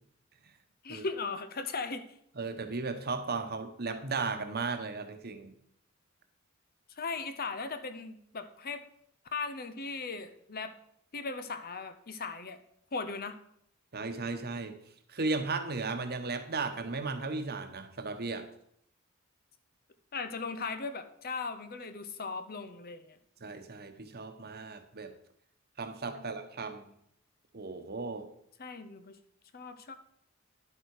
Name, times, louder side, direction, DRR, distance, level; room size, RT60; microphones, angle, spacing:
voice 1, 0.8-2.0 7.0-8.8 9.3-10.7 11.1-12.6 12.9-13.4 20.1-23.2 26.1-26.2 28.6-29.1 29.5-29.9, left 4 dB, 45° left, 10 dB, 0.9 m, -38 dB
voice 2, 2.4-5.5 13.9-14.7 15.1-18.5 23.4-25.1 25.8-26.9 27.5-28.3, right 3 dB, 50° right, 7 dB, 1.2 m, -35 dB
11.0 x 8.4 x 4.8 m, 0.71 s
head